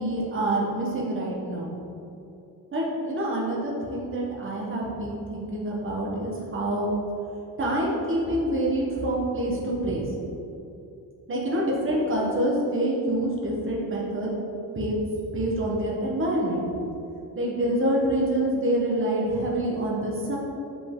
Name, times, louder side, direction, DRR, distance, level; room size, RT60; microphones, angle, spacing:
voice 1, 0.0-1.7 2.7-6.9 7.6-10.0 11.3-14.3 14.7-15.0 15.3-16.6 17.3-20.4, right 1 dB, 30° right, -4 dB, 1.1 m, -26 dB
5.4 x 5.4 x 3.7 m, 2.7 s
wide cardioid pair, 165°, 38 cm